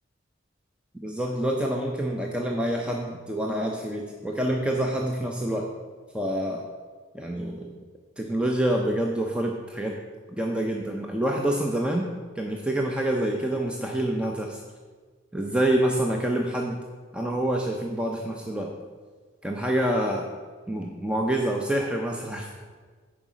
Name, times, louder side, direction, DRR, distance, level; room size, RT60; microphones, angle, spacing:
voice 1, 1.0-5.7 6.1-6.7 7.1-7.7 8.2-10.0 10.3-12.1 12.4-14.6 15.3-16.8 17.1-18.7 19.4-20.2 20.7-22.5, right 1 dB, 5° right, 0 dB, 0.6 m, -27 dB
9.5 x 4.9 x 6.2 m, 1.5 s
head